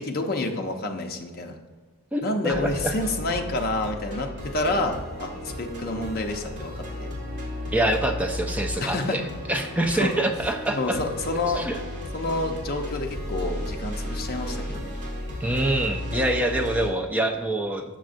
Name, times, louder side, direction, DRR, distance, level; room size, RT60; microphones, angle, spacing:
voice 1, 0.0-1.6 2.2-7.1 8.8-9.2 9.9-10.1 10.7-11.7 12.1-14.9 16.8-17.0, left 2 dB, 45° left, 3 dB, 0.6 m, -29 dB
voice 2, 2.1-2.9 7.7-9.2 9.5-11.0 11.6-11.8 15.4-17.8, right 1 dB, 5° right, 4 dB, 0.4 m, -25 dB
sound 1, 2.5-16.9, left 1 dB, 50° right, 1.8 m, -34 dB
6.3 x 6.2 x 2.6 m, 1.4 s
head